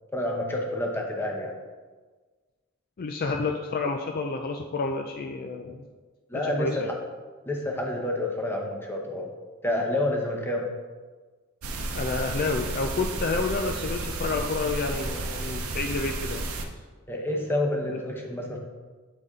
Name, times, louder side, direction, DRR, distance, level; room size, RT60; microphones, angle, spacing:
voice 1, 0.1-1.5 6.3-7.0 7.4-9.3 9.6-10.7 17.1-18.6, left 1 dB, 10° left, 0 dB, 0.8 m, -28 dB
voice 2, 3.0-5.9 6.3-6.9 11.9-16.4 17.9-18.0, left 3 dB, 45° left, 4 dB, 0.4 m, -30 dB
sound 1, 11.6-16.6, right 2 dB, 90° right, 0.7 m, -32 dB
8.1 x 4.0 x 3.6 m, 1.4 s
head